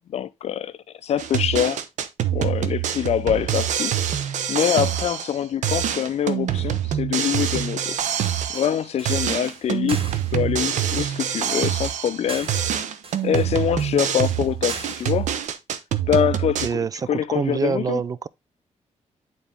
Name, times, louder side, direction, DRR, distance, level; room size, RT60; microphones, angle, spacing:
voice 1, 0.1-0.7 1.0-1.8 2.3-8.0 8.5-12.5 13.2-15.3 16.1-18.0, left 9 dB, 60° left, 0.5 m, -24 dB
sound 1, 1.2-5.4 5.6-8.8 9.0-12.2 12.5-16.7, right 10 dB, 90° right, 0.8 m, -25 dB
sound 2, 8.2-15.5, right 4 dB, 50° right, 1.1 m, -40 dB
voice 2, 16.6-18.3, right 6 dB, 30° right, 0.3 m, -26 dB
9.2 x 4.1 x 3.5 m
wide cardioid pair, 145°, 12 cm